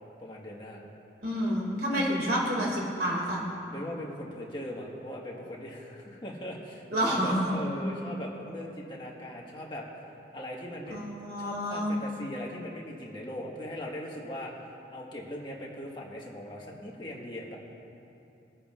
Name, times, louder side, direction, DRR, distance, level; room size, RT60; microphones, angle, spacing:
voice 1, 0.2-0.8 3.7-11.0 11.4-17.6, equal, 25° left, -3 dB, 1.5 m, -40 dB
voice 2, 1.2-3.4 6.9-7.5 10.9-12.0, equal, 55° right, -2 dB, 2.3 m, -29 dB
21.0 x 9.9 x 2.5 m, 2.7 s
head